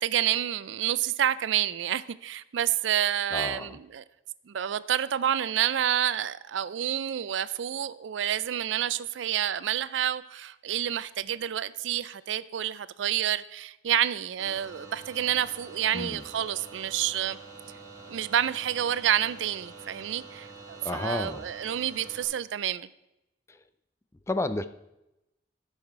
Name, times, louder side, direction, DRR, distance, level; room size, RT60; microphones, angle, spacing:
voice 1, 0.0-4.0 4.5-17.4 18.1-22.9, right 10 dB, 80° right, 16 dB, 0.4 m, -29 dB
voice 2, 3.3-3.8 15.9-16.2 20.8-21.4 23.5-23.6 24.3-24.7, left 2 dB, 15° left, 12 dB, 0.4 m, -31 dB
sound 1, 14.4-22.2, right 4 dB, 20° right, 2.1 m, -46 dB
13.5 x 5.7 x 4.6 m, 0.91 s
head